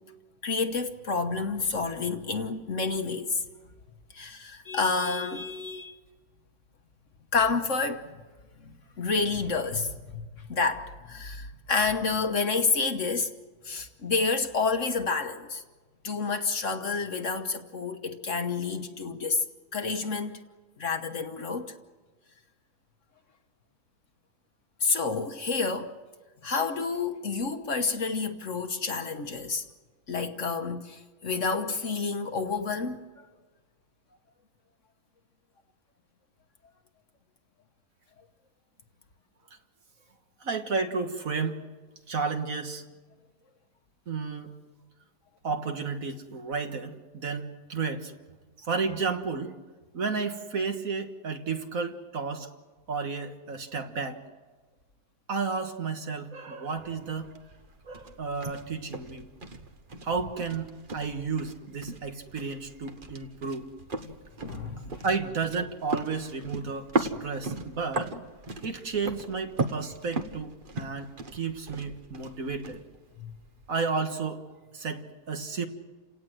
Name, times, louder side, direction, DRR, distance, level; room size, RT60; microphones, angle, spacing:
voice 1, 0.4-3.4 4.1-6.0 7.3-8.1 8.6-13.3 13.6-15.6 16.0-19.4 19.7-20.4 20.8-21.7 24.8-26.0 26.4-29.7 30.1-33.2 64.0-64.1 64.4-65.1 73.2-73.3, left 4 dB, 50° left, 1.4 m, -29 dB
voice 2, 40.4-41.6 42.1-42.8 44.1-44.5 45.4-48.1 48.6-49.5 49.9-52.5 52.9-54.2 55.3-57.3 57.8-59.3 60.0-63.7 65.0-68.1 68.6-72.8 73.7-75.7, right 4 dB, 55° right, 1.8 m, -32 dB
sound 1, 56.8-73.8, right 3 dB, 35° right, 1.2 m, -37 dB
29.5 x 18.0 x 7.7 m
omnidirectional pair, 1.8 m